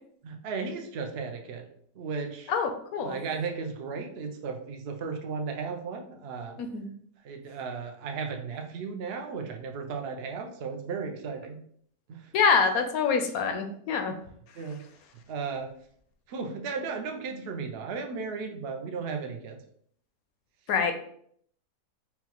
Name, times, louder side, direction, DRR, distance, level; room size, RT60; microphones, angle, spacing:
voice 1, 0.2-1.7 1.9-2.5 3.0-6.6 7.2-11.6 12.1-12.4 14.2-14.8 15.3-15.7 16.3-19.6, right 5 dB, 75° right, 3 dB, 0.5 m, -35 dB
voice 2, 2.5-3.2 6.6-6.9 12.3-14.1 20.7-20.9, left 5 dB, 70° left, 6 dB, 0.9 m, -25 dB
5.5 x 2.4 x 2.9 m, 0.64 s
omnidirectional pair, 1.8 m